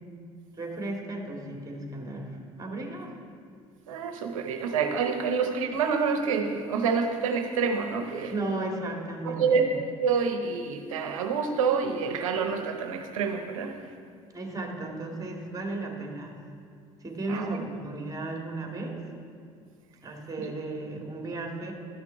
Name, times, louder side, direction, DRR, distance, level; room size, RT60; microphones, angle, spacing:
voice 1, 0.5-3.2 8.3-9.6 14.3-16.4 17.0-19.0 20.0-21.7, right 2 dB, 20° right, 0 dB, 2.2 m, -35 dB
voice 2, 3.9-8.3 9.2-13.8 17.3-17.5 20.4-20.5, right 5 dB, 85° right, 5 dB, 0.8 m, -27 dB
12.5 x 6.0 x 4.6 m, 2.3 s
hypercardioid pair, 60°, 17 cm